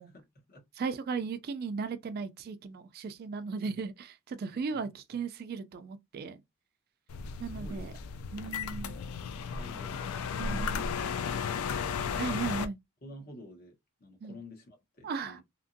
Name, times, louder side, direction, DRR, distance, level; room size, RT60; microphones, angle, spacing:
voice 1, 0.0-0.6 3.6-3.8 4.5-4.8 7.4-7.9 8.2-9.1 9.5-10.1 10.4-10.8 13.0-15.4, left 2 dB, 45° left, 1.0 m, -50 dB
voice 2, 0.8-6.4 7.4-7.9 8.3-9.0 10.4-10.8 12.2-12.8 14.2-14.4 15.0-15.4, right 5 dB, 45° right, 0.3 m, -36 dB
sound 1, 7.1-12.7, left 6 dB, 70° left, 0.4 m, -34 dB
2.8 x 2.5 x 2.5 m
head